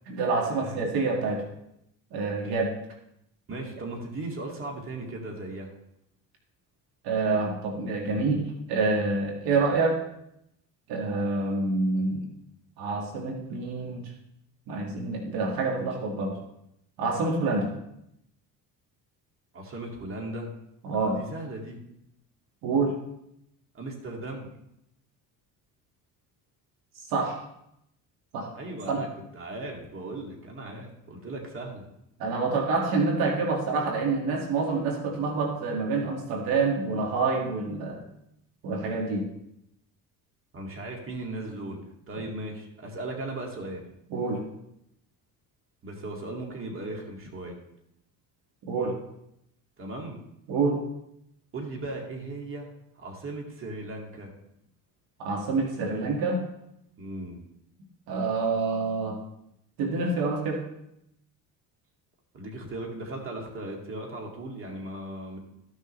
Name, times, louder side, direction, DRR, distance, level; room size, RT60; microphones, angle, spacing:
voice 1, 0.1-1.4 2.1-2.7 7.0-8.4 8.7-10.0 10.9-12.3 12.8-14.0 14.7-16.4 17.0-17.7 20.8-21.2 22.6-23.0 27.1-27.4 28.3-28.5 28.9-29.0 32.2-38.0 38.6-39.3 44.1-44.4 48.6-49.0 50.5-50.8 55.2-56.4 58.1-59.2 59.8-60.6, right 3 dB, 80° right, 0 dB, 2.0 m, -27 dB
voice 2, 3.5-5.7 19.5-20.5 21.1-21.8 23.7-24.5 28.6-29.1 29.3-31.9 40.5-41.8 42.1-43.8 45.8-47.6 49.8-50.2 51.5-52.7 53.0-54.3 57.0-57.5 62.3-65.4, right 2 dB, 35° right, 0 dB, 2.2 m, -37 dB
14.0 x 6.5 x 3.2 m, 0.79 s
cardioid pair, 110°, 37 cm